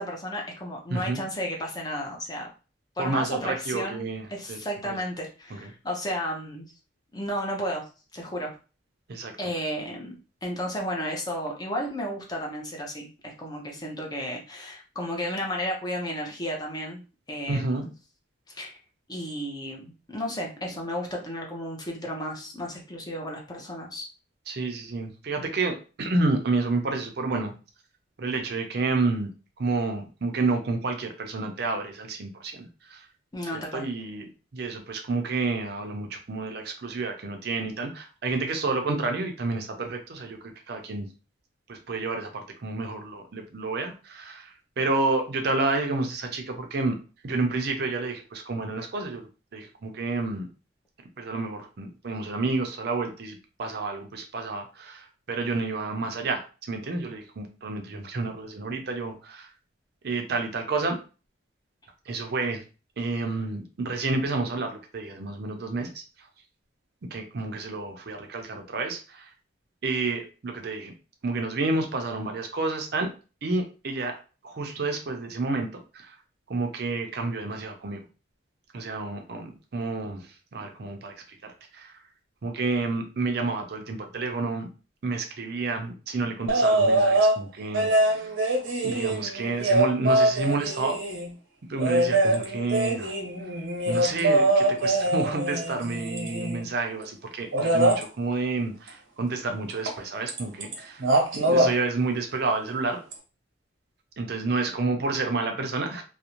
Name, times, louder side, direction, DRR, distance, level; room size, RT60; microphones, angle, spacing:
voice 1, 0.0-2.5 3.0-4.0 4.3-6.7 7.1-7.8 8.1-8.5 9.4-10.2 10.4-17.0 17.3-17.9 18.5-18.8 19.1-24.1 33.3-33.8, equal, 20° left, 0 dB, 0.5 m, -33 dB
voice 2, 0.9-1.2 3.0-5.0 5.5-5.7 9.1-9.3 17.5-17.8 24.5-27.5 28.2-29.3 29.6-33.1 33.5-34.3 34.5-40.4 40.7-41.1 41.7-47.0 47.2-49.3 49.5-50.5 51.2-59.5 60.0-61.0 62.1-62.6 63.0-66.3 67.1-69.3 69.8-70.9 71.2-73.1 73.4-74.2 74.4-75.7 75.9-76.1 76.5-78.1 78.7-81.1 81.4-82.0 82.4-84.7 85.0-88.3 88.8-91.0 91.7-93.1 93.9-101.0 101.5-103.0 104.2-106.0, right 3 dB, 55° right, 4 dB, 0.5 m, -30 dB
sound 1, 86.5-87.4 87.7-91.3 91.8-96.7 97.5-98.0 99.9-100.0 100.3-100.7 101.0-101.7 103.1-103.2, right 1 dB, 85° right, 0.7 m, -23 dB
2.5 x 2.0 x 2.9 m, 0.33 s
head